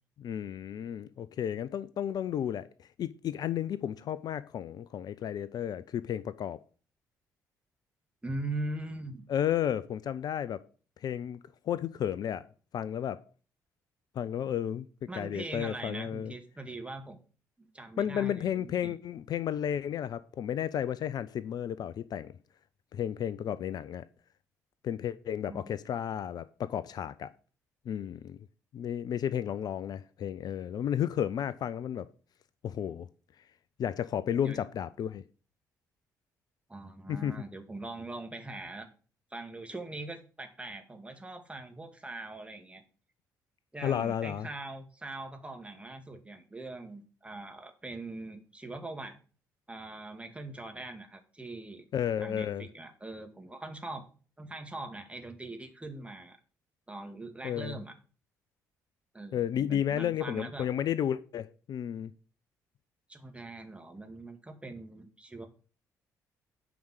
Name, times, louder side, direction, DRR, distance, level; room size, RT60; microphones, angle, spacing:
voice 1, 0.2-6.6 9.3-10.6 11.0-11.4 11.6-12.5 12.7-13.2 14.2-14.9 15.1-16.3 18.0-22.3 22.9-24.0 24.8-27.3 27.9-28.4 28.7-32.1 32.6-33.1 33.8-35.2 37.1-37.3 43.8-44.5 51.9-52.7 57.4-57.8 59.3-62.1, left 9 dB, 45° left, 0.5 m, -32 dB
voice 2, 8.2-9.2 15.1-17.2 17.6-18.9 25.5-25.6 34.4-34.6 36.7-38.9 39.3-42.8 43.7-49.2 49.7-51.9 52.2-54.1 54.4-56.4 56.9-57.9 59.1-60.7 63.1-65.5, right 2 dB, 15° right, 2.1 m, -41 dB
9.4 x 5.1 x 6.1 m
figure-of-eight pair, 45°, 9 cm